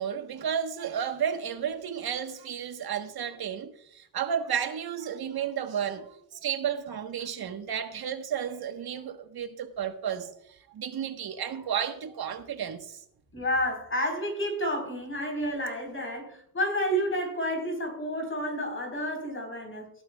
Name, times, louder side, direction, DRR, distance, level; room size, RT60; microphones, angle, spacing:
voice 1, 0.0-13.0, right 8 dB, 85° right, 1.4 m, -32 dB
voice 2, 13.3-19.9, equal, 35° left, 4.3 m, -30 dB
18.0 x 11.0 x 2.4 m
wide cardioid pair, 115°, 36 cm